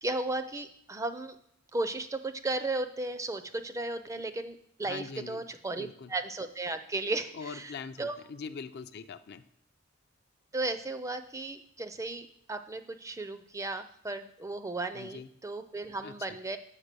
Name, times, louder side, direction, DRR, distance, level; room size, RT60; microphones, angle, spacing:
voice 1, 0.0-1.4 1.7-7.7 8.0-8.2 10.5-16.6, right 2 dB, 15° right, 9 dB, 0.4 m, -35 dB
voice 2, 4.8-5.4 5.7-6.1 7.3-9.4 14.9-15.3 16.0-16.4, left 5 dB, 50° left, 11 dB, 0.4 m, -42 dB
7.4 x 5.3 x 6.7 m, 0.71 s
head